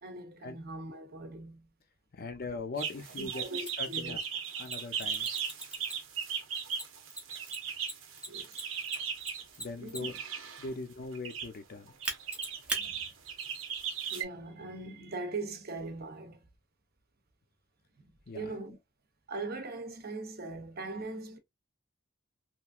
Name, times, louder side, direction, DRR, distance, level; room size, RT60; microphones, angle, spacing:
voice 1, 0.0-1.7 3.2-4.2 8.3-8.6 9.8-10.1 12.8-13.0 14.1-16.4 18.0-18.8 19.3-21.4, right 2 dB, 50° right, 0.7 m, -41 dB
voice 2, 2.1-3.4 3.8-4.2 4.6-5.3 9.6-10.2 10.6-11.9 18.3-18.5, left 3 dB, 50° left, 0.5 m, -40 dB
sound 1, 2.8-9.4 10.0-10.7 11.1-11.5 12.0-14.2, right 7 dB, 85° right, 0.7 m, -37 dB
Mechanisms, 3.7-3.8 4.6-6.2 6.7-10.3 12.0-12.8, right 2 dB, 5° right, 0.8 m, -38 dB
3.0 x 2.5 x 2.3 m
head